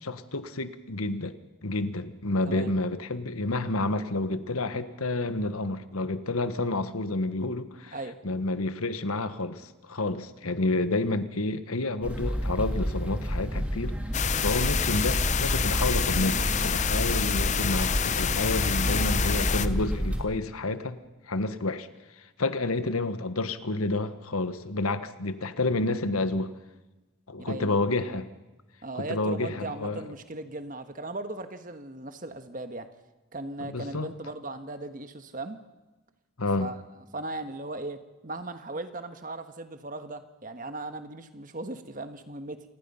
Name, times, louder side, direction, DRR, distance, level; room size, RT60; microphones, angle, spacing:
voice 1, 0.0-1.3 1.6-8.0 8.2-13.9 14.4-21.0 21.3-21.9 22.4-26.5 27.3-28.3 28.9-30.0 33.6-34.1 36.4-36.7, left 2 dB, 90° left, 11 dB, 1.4 m, -29 dB
sound 1, 12.0-20.2, equal, 5° right, 2.4 m, -29 dB
sound 2, 14.1-19.7, left 7 dB, 35° left, 0.7 m, -28 dB
voice 2, 18.8-19.2 27.4-27.8 28.8-32.9 33.3-35.6 36.6-36.8 37.1-42.6, right 2 dB, 40° right, 9 dB, 1.5 m, -38 dB
27.0 x 19.5 x 5.7 m, 1.1 s
head